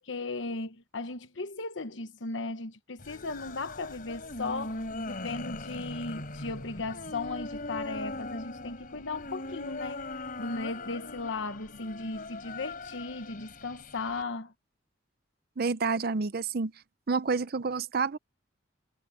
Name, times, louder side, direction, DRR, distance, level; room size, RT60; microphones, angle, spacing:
voice 1, 0.0-10.1 10.4-14.5, left 3 dB, 75° left, 1.1 m, -36 dB
sound 1, 3.0-14.2, left 2 dB, 45° left, 4.6 m, -40 dB
voice 2, 15.6-16.7 17.1-18.2, right 4 dB, 55° right, 0.6 m, -29 dB
head